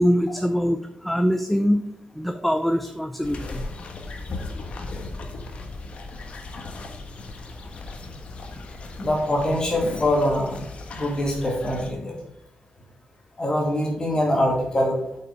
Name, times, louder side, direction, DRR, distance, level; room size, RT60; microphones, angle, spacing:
voice 1, 0.0-1.8 2.2-3.6, equal, 5° left, 7 dB, 0.4 m, -23 dB
sound 1, 3.2-11.9, left 3 dB, 55° left, 1.2 m, -37 dB
voice 2, 9.0-10.6 10.9-12.2 13.4-15.0, left 1 dB, 35° left, -1 dB, 2.4 m, -23 dB
8.2 x 5.7 x 4.7 m, 0.77 s
wide cardioid pair, 130°, 2 cm